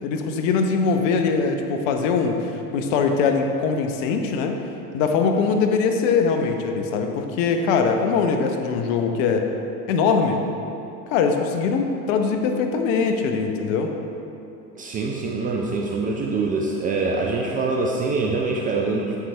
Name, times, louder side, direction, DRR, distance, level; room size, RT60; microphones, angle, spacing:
voice 1, 0.0-4.6 4.9-9.5 9.9-10.4 11.1-13.9, left 5 dB, 50° left, 4 dB, 0.9 m, -22 dB
voice 2, 14.8-19.2, right 3 dB, 20° right, 0 dB, 0.4 m, -24 dB
8.2 x 7.7 x 3.4 m, 2.8 s
figure-of-eight pair, 85°, 48 cm